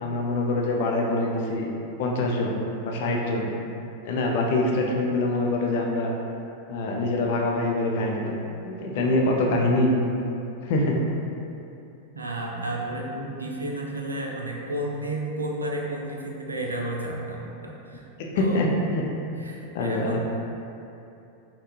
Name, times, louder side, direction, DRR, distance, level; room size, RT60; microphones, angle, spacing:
voice 1, 0.0-1.6 2.0-2.5 2.8-3.5 4.0-6.1 6.7-9.9 10.6-11.0 12.5-12.6 13.1-13.3 18.2-19.0 19.7-20.2, left 2 dB, 50° left, -1 dB, 0.5 m, -25 dB
voice 2, 12.2-18.1 18.3-18.6 19.2-20.2, right 1 dB, 80° right, -1 dB, 0.5 m, -32 dB
5.4 x 2.3 x 3.0 m, 2.7 s
figure-of-eight pair, 90°, 0 cm